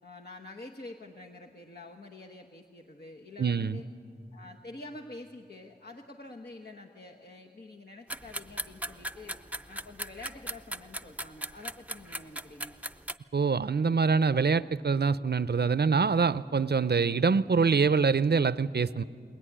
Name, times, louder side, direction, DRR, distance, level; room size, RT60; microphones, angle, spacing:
voice 1, 0.0-3.9 4.3-9.4 9.7-12.8, left 2 dB, 65° left, -1 dB, 1.3 m, -47 dB
voice 2, 3.4-3.8 13.3-19.0, right 5 dB, 70° right, 16 dB, 0.5 m, -25 dB
sound 1, 8.1-13.1, right 1 dB, 10° right, 0.6 m, -38 dB
21.0 x 20.0 x 10.0 m, 2.4 s
wide cardioid pair, 45°, 17 cm